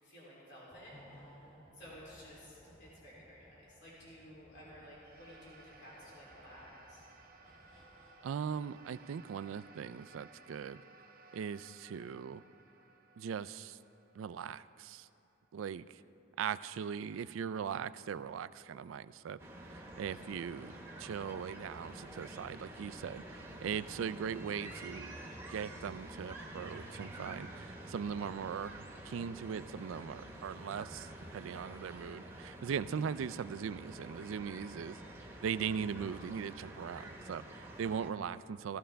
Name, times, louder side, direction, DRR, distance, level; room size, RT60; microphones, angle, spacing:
voice 1, 0.0-1.4 1.7-7.1, equal, 60° left, -7 dB, 3.0 m, -54 dB
sound 1, 0.7-9.2 9.5-9.7, equal, 20° left, 2.4 m, -61 dB
sound 2, 4.9-15.5, right 3 dB, 45° right, 0.7 m, -60 dB
voice 2, 8.2-10.8 11.3-12.4 13.2-13.8 14.1-15.1 15.5-16.0 16.4-19.4 19.7-20.7 21.0-25.2 25.5-35.0 35.4-38.8, right 7 dB, 85° right, 15 dB, 0.3 m, -40 dB
sound 3, 19.4-38.1, right 1 dB, 10° right, 1.1 m, -48 dB
15.0 x 14.5 x 3.4 m, 2.7 s
head